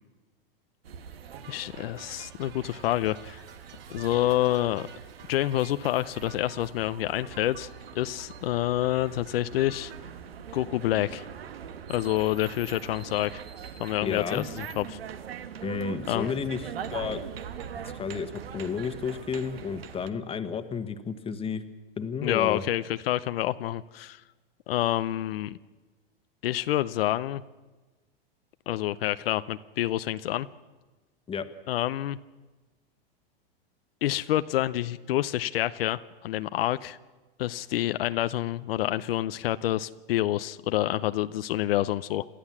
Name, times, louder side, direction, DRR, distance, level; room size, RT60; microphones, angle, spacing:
sound 1, 0.8-20.1, right 8 dB, 90° right, 1.4 m, -42 dB
sound 2, 1.4-10.0, right 7 dB, 40° right, 3.4 m, -52 dB
voice 1, 1.5-3.4 3.9-4.9 5.3-7.7 7.9-9.9 10.5-11.2 11.9-13.4 13.8-15.0 16.1-16.3 22.2-24.2 24.7-25.6 26.4-27.4 28.7-30.5 31.7-32.2 34.0-37.0 37.4-42.3, left 14 dB, 75° left, 13 dB, 0.7 m, -28 dB
voice 2, 14.0-14.4 15.6-17.2 17.9-21.6 22.0-22.6 31.3-31.5, left 6 dB, 20° left, 10 dB, 1.3 m, -32 dB
28.5 x 13.0 x 7.4 m, 1.2 s
hypercardioid pair, 120°, 29 cm